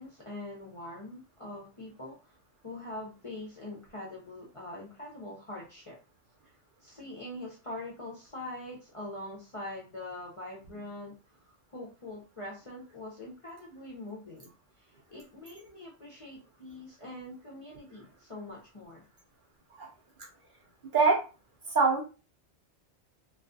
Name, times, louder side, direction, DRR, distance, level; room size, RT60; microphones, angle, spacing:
voice 1, 0.0-2.4 2.6-6.0 6.8-14.5 14.8-19.0, left 1 dB, 40° left, -3 dB, 0.5 m, -43 dB
voice 2, 21.7-22.0, right 4 dB, 55° right, 0 dB, 0.7 m, -23 dB
2.3 x 2.3 x 2.5 m, 0.32 s
omnidirectional pair, 1.2 m